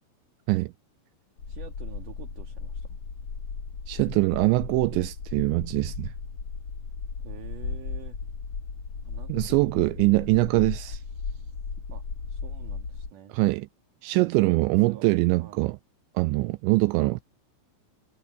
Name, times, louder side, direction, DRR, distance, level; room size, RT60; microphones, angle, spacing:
sound 1, 1.4-13.1, left 5 dB, 40° left, 2.6 m, -36 dB
voice 1, 1.5-3.0 7.2-8.2 9.0-9.9 11.9-13.3 14.2-15.0 15.4-15.7, right 9 dB, 55° right, 2.6 m, -47 dB
voice 2, 3.9-6.1 9.3-11.0 13.3-13.7 14.0-15.8 16.2-17.2, right 23 dB, 85° right, 2.6 m, -23 dB
omnidirectional pair, 5.7 m